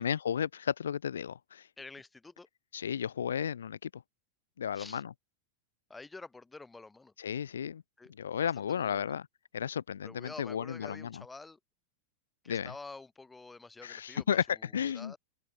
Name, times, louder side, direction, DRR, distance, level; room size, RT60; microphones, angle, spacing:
voice 1, 0.0-1.7 2.7-4.0 4.6-5.1 7.2-7.8 8.2-9.3 9.5-11.2 12.5-12.7 13.8-15.1, left 8 dB, 65° left, 0.8 m, -33 dB
voice 2, 1.8-2.5 4.7-5.0 5.9-7.1 8.0-8.1 8.4-9.0 10.0-11.6 12.4-14.4 14.8-15.2, left 3 dB, 10° left, 7.0 m, -48 dB
figure-of-eight pair, 90°, 0 cm